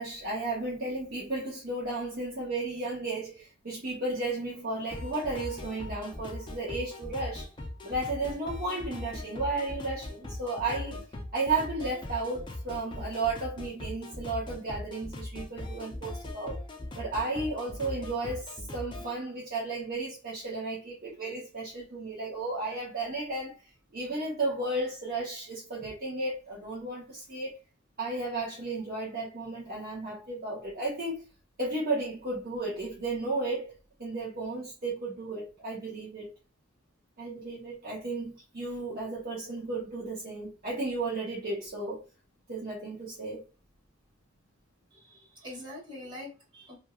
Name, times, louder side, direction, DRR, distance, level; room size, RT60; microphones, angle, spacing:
voice 1, 0.0-7.5 7.8-11.0 11.3-16.6 17.0-23.6 23.9-27.5 28.0-31.2 31.6-36.3 37.2-42.0 42.5-43.5, right 2 dB, 50° right, 1.0 m, -34 dB
sound 1, 4.9-19.1, left 1 dB, 25° left, 0.6 m, -40 dB
voice 2, 44.9-46.8, left 1 dB, 25° right, 1.7 m, -44 dB
3.0 x 2.7 x 2.3 m
head